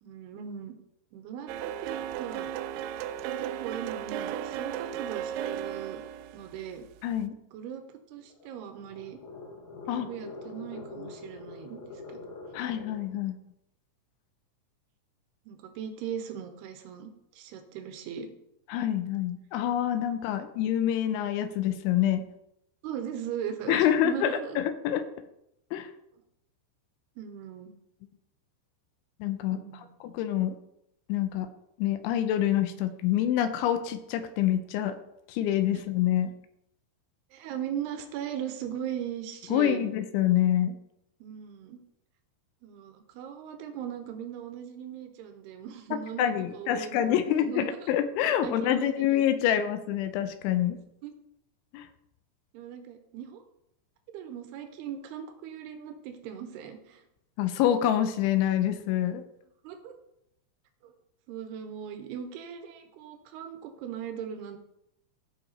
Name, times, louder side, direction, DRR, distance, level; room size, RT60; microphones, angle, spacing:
voice 1, 0.0-0.7 1.1-2.5 3.4-6.0 6.3-6.9 7.5-9.2 9.9-11.8 12.1-12.2 15.5-18.3 22.8-24.6 27.2-27.7 29.5-30.0 37.3-39.9 41.2-41.8 42.6-47.9 48.4-49.1 49.4-49.5 51.0-51.1 52.5-53.4 54.1-57.0 59.6-59.9 60.8-60.9 61.3-64.6, right 9 dB, 75° right, 6 dB, 2.5 m, -39 dB
sound 1, 1.5-7.2, right 10 dB, 90° right, 2.5 m, -35 dB
voice 2, 7.0-7.4 9.9-10.1 12.5-13.3 18.7-22.2 23.7-25.1 25.7-25.9 29.2-30.6 31.1-31.5 31.8-35.0 35.3-36.3 39.5-40.8 46.2-50.8 51.7-51.9 57.4-59.2, left 11 dB, 85° left, 10 dB, 2.9 m, -26 dB
sound 2, 8.2-13.1, left 3 dB, 50° left, 3.4 m, -44 dB
15.5 x 5.9 x 4.2 m, 0.80 s
omnidirectional pair, 5.8 m